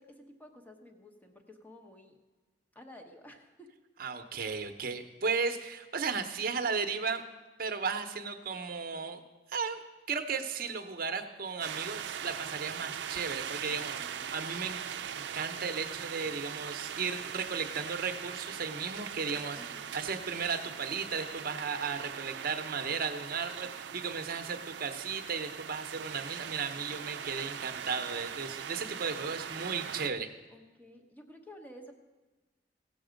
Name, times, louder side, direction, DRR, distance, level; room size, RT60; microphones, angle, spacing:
voice 1, 0.0-2.2 2.7-3.8 13.7-14.3 19.6-19.9 30.5-31.9, left 1 dB, 10° left, 4 dB, 1.0 m, -52 dB
voice 2, 4.0-7.2 7.6-9.2 9.5-9.8 10.1-14.8 15.2-19.6 19.9-30.3, right 5 dB, 55° right, 7 dB, 0.8 m, -35 dB
sound 1, 11.6-30.1, right 8 dB, 75° right, 0.4 m, -41 dB
17.0 x 7.0 x 5.1 m, 1.2 s
head